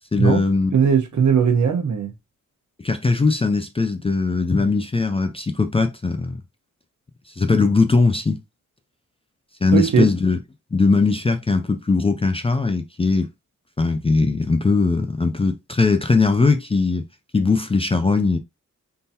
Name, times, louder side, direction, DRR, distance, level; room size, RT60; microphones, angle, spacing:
voice 1, 0.1-0.7 2.8-6.4 7.4-8.4 9.6-10.4 10.7-13.3 13.8-17.0 17.3-18.4, left 3 dB, 20° left, 0.3 m, -20 dB
voice 2, 0.7-2.1 9.7-10.1, right 7 dB, 70° right, 1.0 m, -18 dB
3.7 x 2.8 x 2.6 m
wide cardioid pair, 170°, 31 cm